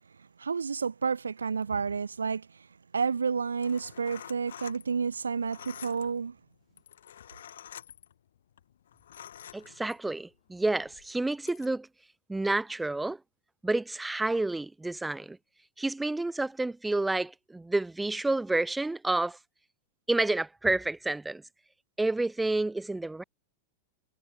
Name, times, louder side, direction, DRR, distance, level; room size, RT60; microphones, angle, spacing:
voice 1, 0.4-2.5 2.9-6.3, right 5 dB, 75° right, 1.1 m, -30 dB
sound 1, 3.4-10.2 10.8-11.7, left 10 dB, 65° left, 3.8 m, -49 dB
voice 2, 9.5-11.9 12.3-13.2 13.6-15.4 15.8-19.4 20.1-21.4 22.0-23.2, right 2 dB, 5° right, 2.1 m, -29 dB
figure-of-eight pair, 90°, 0 cm